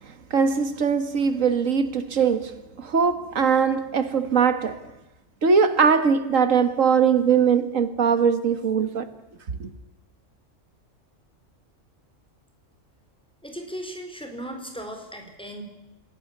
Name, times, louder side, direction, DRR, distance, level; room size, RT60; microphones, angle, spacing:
voice 1, 0.3-4.8 5.4-9.1 9.6-9.7, right 6 dB, 85° right, 1.9 m, -21 dB
voice 2, 13.4-15.6, equal, 5° left, 4.4 m, -37 dB
27.0 x 18.0 x 8.6 m
omnidirectional pair, 1.3 m